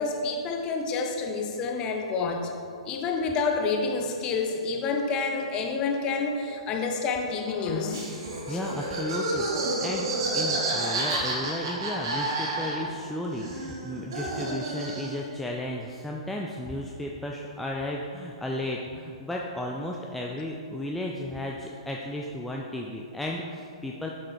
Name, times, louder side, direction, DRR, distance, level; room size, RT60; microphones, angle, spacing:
voice 1, 0.0-2.5 2.9-8.1 8.5-8.6 12.7-12.9, left 4 dB, 25° left, 2 dB, 0.7 m, -28 dB
Laughter, 7.9-13.1 13.3-15.3, right 2 dB, 50° right, 1.5 m, -30 dB
voice 2, 8.5-24.1, left 1 dB, 5° left, -2 dB, 0.3 m, -34 dB
7.2 x 4.7 x 3.1 m, 2.3 s
figure-of-eight pair, 115°, 3 cm